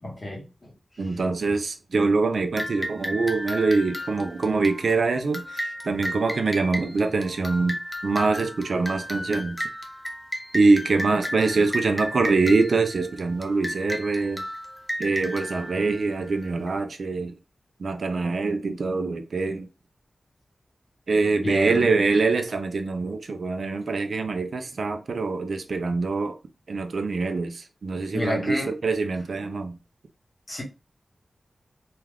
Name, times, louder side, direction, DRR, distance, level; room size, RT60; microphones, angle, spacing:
voice 1, 0.0-1.2 5.6-5.7 21.4-21.9 28.1-28.8 30.5-30.6, left 1 dB, 40° left, 1.0 m, -31 dB
voice 2, 1.0-7.8 8.0-9.6 10.5-14.4 15.0-17.3 17.8-19.7 21.1-26.3 26.7-29.7, right 3 dB, 75° right, 0.4 m, -24 dB
sound 1, 2.6-16.7, equal, 5° left, 0.5 m, -34 dB
2.4 x 2.3 x 3.3 m
wide cardioid pair, 95°, 0 cm